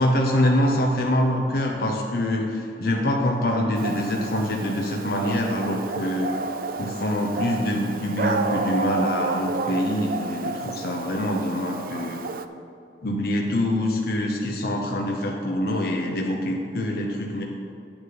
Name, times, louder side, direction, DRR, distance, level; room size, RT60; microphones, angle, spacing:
voice 1, 0.0-6.3 6.8-12.2 13.0-17.4, left 1 dB, 55° left, 0 dB, 0.7 m, -25 dB
Dog, 3.8-12.5, right 4 dB, 50° right, 0.4 m, -31 dB
9.4 x 8.8 x 3.8 m, 2.6 s
head